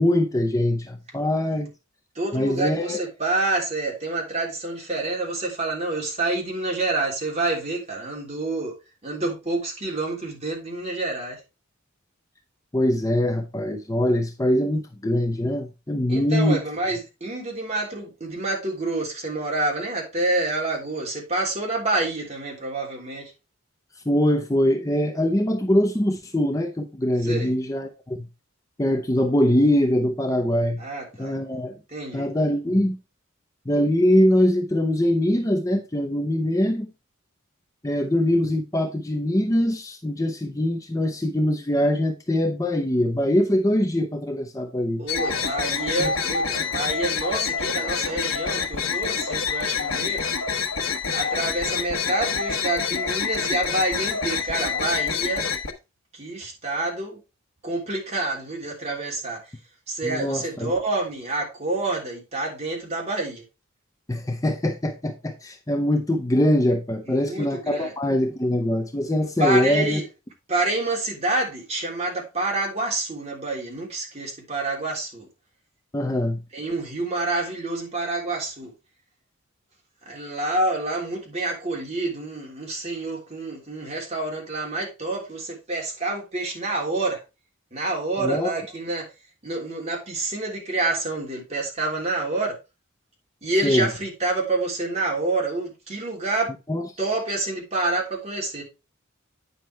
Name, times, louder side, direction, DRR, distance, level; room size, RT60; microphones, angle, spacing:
voice 1, 0.0-1.7 2.3-3.0 12.7-16.6 24.1-28.3 28.8-30.8 31.2-31.8 32.1-33.0 33.7-36.9 37.8-45.0 46.0-46.1 60.0-60.7 64.1-70.0 75.9-76.4 88.2-88.5 93.6-93.9 96.7-96.8, left 1 dB, 15° left, 0.7 m, -23 dB
voice 2, 2.1-8.7 9.0-11.4 16.1-23.3 27.2-27.5 30.8-31.3 31.9-32.3 45.0-50.2 51.1-55.4 56.1-57.2 57.6-59.4 59.9-63.4 67.1-67.9 69.4-70.0 70.5-75.3 76.5-78.7 80.0-87.2 87.7-89.1 89.4-92.5 93.4-96.5 97.0-98.6, right 2 dB, 30° right, 3.3 m, -28 dB
sound 1, 45.1-55.7, left 6 dB, 80° left, 1.2 m, -27 dB
9.4 x 5.8 x 3.3 m
head